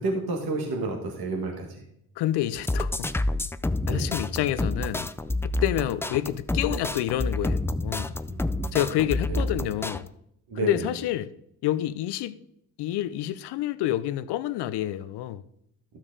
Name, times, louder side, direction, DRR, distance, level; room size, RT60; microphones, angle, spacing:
voice 1, 0.0-1.8 3.8-4.1 8.3-8.8 9.3-9.5 10.5-10.9, right 3 dB, 65° right, 2.0 m, -31 dB
voice 2, 2.2-3.1 3.9-5.1 5.6-8.1 8.7-10.1 10.6-11.3 11.6-12.4 12.8-15.4, left 13 dB, 80° left, 0.6 m, -28 dB
sound 1, 2.5-10.0, left 1 dB, 5° left, 0.4 m, -28 dB
12.5 x 6.2 x 4.0 m
supercardioid pair, 65°, 40 cm